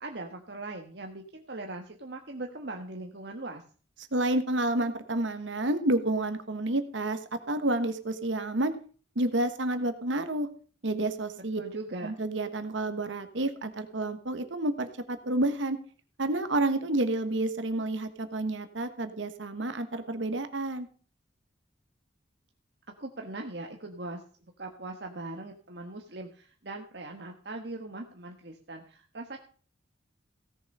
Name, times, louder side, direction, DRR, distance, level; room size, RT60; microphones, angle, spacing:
voice 1, 0.0-3.6 11.6-12.1 23.0-24.2 24.6-29.4, right 2 dB, 60° right, 3 dB, 1.3 m, -40 dB
voice 2, 4.1-7.2 7.5-8.7 9.1-10.5 10.8-11.6 12.0-15.8 16.2-20.9, right 1 dB, 80° right, 9 dB, 1.3 m, -29 dB
16.5 x 7.1 x 5.4 m, 0.41 s
head